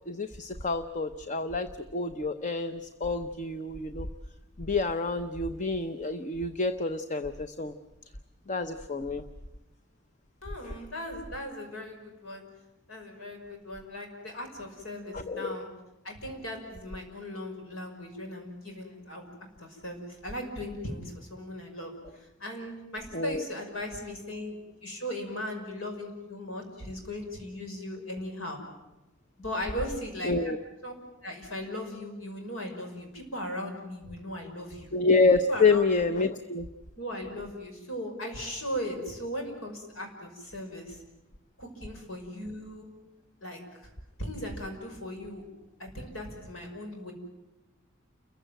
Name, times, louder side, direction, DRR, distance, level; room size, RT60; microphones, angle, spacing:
voice 1, 0.1-4.1 4.6-7.7 8.5-9.2 10.6-10.8 15.1-15.6 23.1-23.4 30.2-30.6 34.9-36.7, left 3 dB, 40° left, 10 dB, 0.8 m, -28 dB
voice 2, 10.4-12.4 12.9-15.7 16.0-19.3 19.6-21.9 22.4-24.5 24.8-28.6 29.4-30.5 30.8-30.9 31.2-34.9 35.5-35.8 36.1-36.2 37.0-41.0 41.6-42.9 43.4-43.6 44.2-45.4 45.8-47.1, left 1 dB, 85° left, 3 dB, 5.7 m, -38 dB
29.5 x 15.5 x 9.1 m, 1.0 s
head